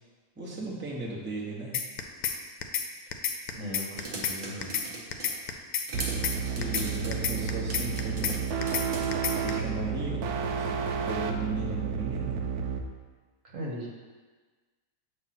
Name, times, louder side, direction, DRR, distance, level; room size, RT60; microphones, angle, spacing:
voice 1, 0.4-1.8 6.4-8.4 9.3-10.2 10.6-12.4, right 2 dB, 10° right, -5 dB, 0.9 m, -37 dB
sound 1, 1.7-2.4 2.6-2.9 3.1-4.4 4.6-4.9 5.1-6.4 6.6-6.9 7.1-8.4 8.6-8.9 9.1-9.5, left 8 dB, 85° left, 1.1 m, -29 dB
voice 2, 3.5-4.8 13.4-13.9, equal, 60° right, -2 dB, 1.4 m, -38 dB
sound 2, 4.0-5.4 5.9-9.1, right 2 dB, 40° right, 0.9 m, -40 dB
sound 3, 5.9-12.8, right 6 dB, 90° right, 1.1 m, -31 dB
7.2 x 3.1 x 5.8 m, 1.4 s
omnidirectional pair, 1.5 m